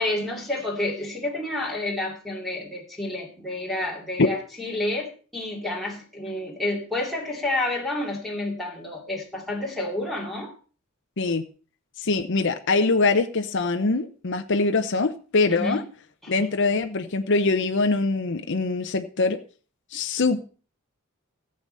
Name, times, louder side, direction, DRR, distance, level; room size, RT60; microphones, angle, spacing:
voice 1, 0.0-10.5 15.5-15.8 16.2-16.4, left 2 dB, ahead, -4 dB, 2.5 m, -29 dB
voice 2, 12.0-15.8 16.3-19.4 19.9-20.4, left 3 dB, 60° left, 7 dB, 0.8 m, -23 dB
14.5 x 7.9 x 5.5 m, 0.39 s
head